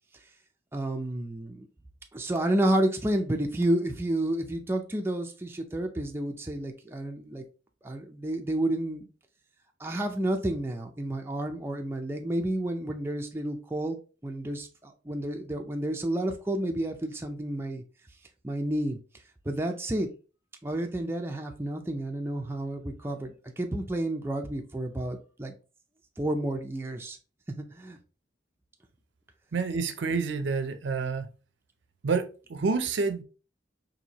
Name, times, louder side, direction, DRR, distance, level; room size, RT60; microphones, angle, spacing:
voice 1, 0.7-1.7 2.1-7.4 7.8-9.1 9.8-17.8 18.4-19.0 19.5-20.1 20.6-25.5 26.2-27.2 27.6-28.0, right 1 dB, 10° right, 0.4 m, -30 dB
voice 2, 29.5-31.3 32.0-33.2, right 4 dB, 65° right, 0.5 m, -28 dB
4.3 x 2.7 x 2.9 m
head